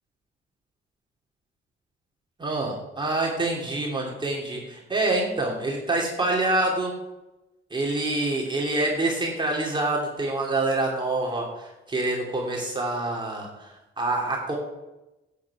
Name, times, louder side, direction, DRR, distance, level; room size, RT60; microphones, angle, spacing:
voice 1, 2.4-6.9 7.7-13.7 14.0-14.6, right 2 dB, 25° right, -1 dB, 2.7 m, -26 dB
11.5 x 8.6 x 4.8 m, 0.99 s
cardioid pair, 90°, 20 cm